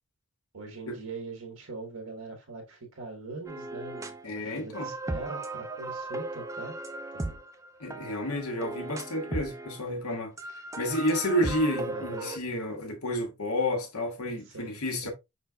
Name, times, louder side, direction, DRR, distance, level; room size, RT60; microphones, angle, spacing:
voice 1, 0.5-6.8 7.1-7.4 11.9-12.3 14.5-15.1, right 3 dB, 85° right, 1.4 m, -42 dB
sound 1, 3.5-4.3 4.6-9.9 10.4-12.4, right 2 dB, 15° right, 0.4 m, -37 dB
voice 2, 4.2-4.9 7.8-15.1, left 1 dB, 90° left, 1.5 m, -30 dB
5.3 x 4.3 x 2.3 m
head